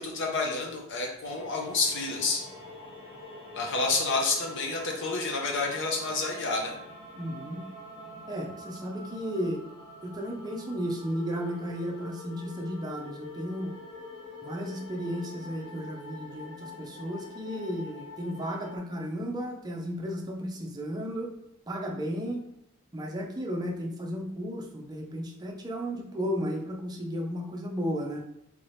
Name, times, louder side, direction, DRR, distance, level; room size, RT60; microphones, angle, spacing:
voice 1, 0.0-2.4 3.5-6.7, left 3 dB, 60° left, 1 dB, 0.8 m, -29 dB
sound 1, 1.2-18.8, left 2 dB, 25° left, 0.9 m, -45 dB
voice 2, 7.2-7.6 8.3-9.6 10.0-13.7 14.4-21.3 21.7-22.4 22.9-28.3, equal, 20° right, 0 dB, 0.5 m, -34 dB
3.5 x 2.8 x 3.3 m, 0.78 s
head